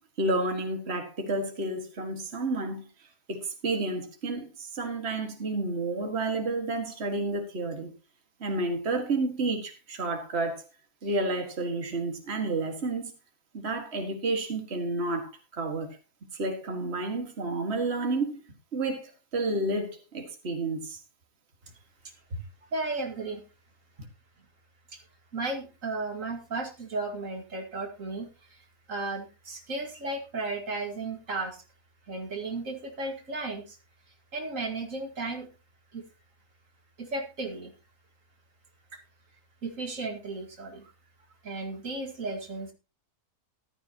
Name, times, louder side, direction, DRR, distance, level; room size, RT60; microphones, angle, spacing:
voice 1, 0.2-2.8 3.3-7.9 8.4-10.6 11.0-13.1 13.5-16.0 16.3-18.4 18.7-21.0, right 2 dB, 50° right, 2.1 m, -30 dB
voice 2, 22.3-23.4 24.9-25.0 25.3-31.6 32.1-33.8 34.3-35.5 35.9-36.0 37.0-37.7 39.6-40.9 41.4-42.7, right 3 dB, 70° right, 2.3 m, -34 dB
14.5 x 12.5 x 2.9 m
omnidirectional pair, 1.4 m